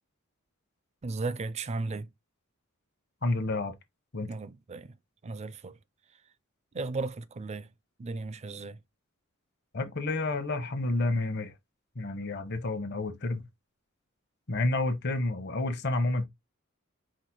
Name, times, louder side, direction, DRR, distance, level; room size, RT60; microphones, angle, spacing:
voice 1, 1.0-2.1 4.3-4.9 5.2-5.8 6.7-7.7 8.0-8.8, right 3 dB, 30° right, 0.4 m, -35 dB
voice 2, 3.2-3.7 4.1-4.3 9.7-11.5 12.0-13.4 14.5-16.2, left 2 dB, 55° left, 0.9 m, -29 dB
4.9 x 2.1 x 4.3 m
head